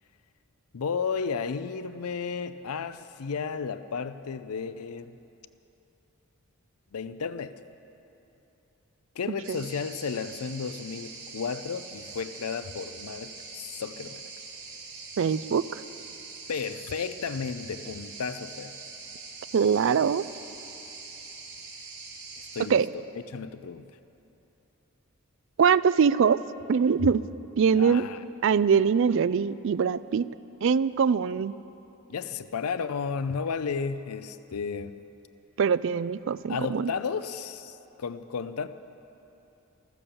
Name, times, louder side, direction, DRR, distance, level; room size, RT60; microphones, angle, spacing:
voice 1, 0.7-5.1 6.9-7.6 9.2-14.2 16.5-18.8 22.4-22.8 23.3-23.9 27.8-28.2 32.1-35.0 36.5-38.7, left 5 dB, 85° left, 13 dB, 0.5 m, -33 dB
voice 2, 9.3-9.6 15.2-15.8 19.5-20.3 22.7-22.9 25.6-26.4 26.7-27.2 27.6-28.1 28.4-30.3 30.6-31.5 35.6-36.9, right 6 dB, 55° right, 17 dB, 0.3 m, -23 dB
sound 1, 9.4-22.6, right 4 dB, 75° right, 4.3 m, -43 dB
14.0 x 14.0 x 7.0 m, 3.0 s
head